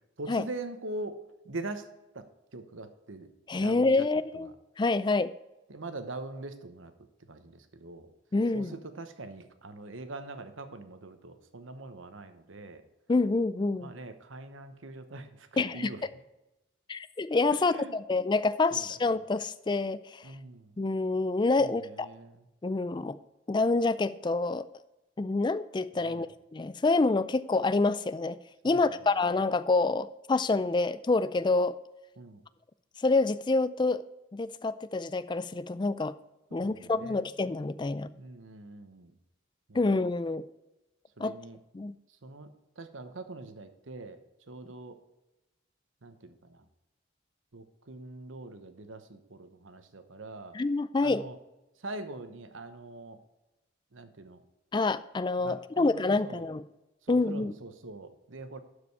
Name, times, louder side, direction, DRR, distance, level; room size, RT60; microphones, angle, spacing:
voice 1, 0.2-1.2 1.4-1.9 2.1-2.3 2.5-3.3 3.6-4.1 4.3-4.5 5.7-6.9 7.3-8.1 8.5-12.8 13.8-16.0 17.5-18.0 18.7-18.9 20.2-20.7 21.6-22.4 26.0-26.3 28.6-29.0 32.2-32.4 36.5-37.3 38.1-39.2 39.7-39.9 41.2-41.6 42.2-42.5 42.8-44.2 44.5-45.0 46.0-46.6 47.5-50.6 51.0-51.3 51.8-53.2 53.9-54.4 55.4-56.5 57.0-58.6, right 2 dB, 75° right, 9 dB, 1.0 m, -43 dB
voice 2, 3.5-4.5 4.8-5.3 8.3-8.7 13.1-13.9 15.6-15.9 16.9-20.3 20.8-22.1 22.6-23.2 23.5-24.7 25.2-28.4 28.6-31.8 33.0-34.0 34.3-36.1 36.5-38.1 39.7-40.4 41.2-41.4 41.7-42.0 50.5-51.2 54.7-56.6 57.1-57.5, left 3 dB, 20° left, 15 dB, 0.3 m, -27 dB
12.0 x 5.1 x 4.8 m, 0.97 s
head